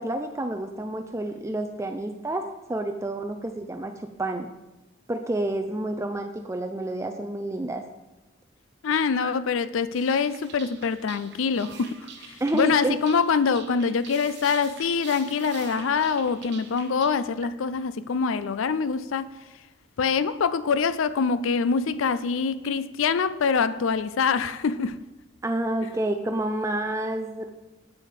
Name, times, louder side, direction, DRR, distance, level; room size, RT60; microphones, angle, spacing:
voice 1, 0.0-4.5 5.1-7.9 9.1-9.3 12.4-13.0 25.4-27.5, right 1 dB, 15° right, 0.4 m, -29 dB
voice 2, 8.8-12.0 12.5-19.3 20.0-25.0, left 5 dB, 80° left, 0.4 m, -24 dB
sound 1, 9.9-17.1, right 7 dB, 55° right, 1.0 m, -45 dB
8.4 x 7.9 x 4.9 m
head